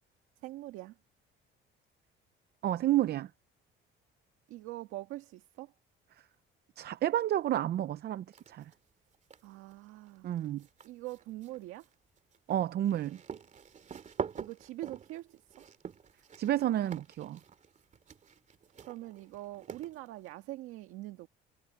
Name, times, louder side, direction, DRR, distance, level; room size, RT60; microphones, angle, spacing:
voice 1, 0.4-1.0 4.5-5.7 9.4-10.3 10.8-11.9 14.4-15.6 18.9-21.3, right 17 dB, 90° right, 1.8 m, -43 dB
voice 2, 2.6-3.3 6.8-8.6 10.2-10.6 12.5-13.2 16.4-17.4, right 12 dB, 50° right, 0.6 m, -30 dB
sound 1, 8.3-8.8 9.1-20.3, right 6 dB, 35° right, 2.4 m, -45 dB
cardioid pair, 125°, 21 cm